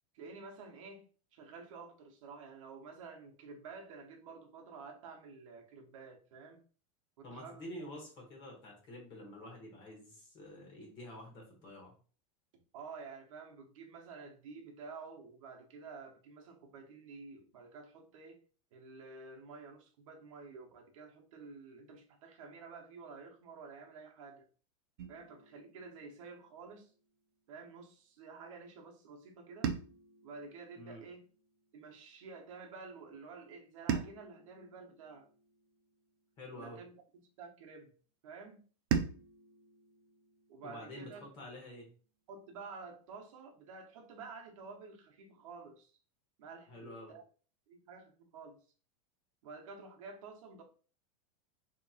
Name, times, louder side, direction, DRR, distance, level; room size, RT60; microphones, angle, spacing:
voice 1, 0.1-1.0 1.3-6.6 7.2-7.7 12.7-18.4 18.7-24.4 25.1-26.9 27.5-29.7 30.2-31.2 31.7-35.3 36.6-37.9 38.2-38.6 40.5-41.3 42.3-45.9 46.4-47.2 47.7-48.6 49.4-50.6, right 4 dB, 60° right, 2 dB, 0.8 m, -50 dB
voice 2, 7.2-11.9 30.8-31.0 36.4-36.8 40.6-41.9 46.7-47.1, left 1 dB, 25° left, 0 dB, 1.0 m, -48 dB
sound 1, 25.0-27.2 29.6-32.0 33.9-36.4 38.9-41.4, right 7 dB, 45° right, 0.4 m, -41 dB
4.1 x 2.9 x 2.4 m, 0.39 s
supercardioid pair, 180°, 19 cm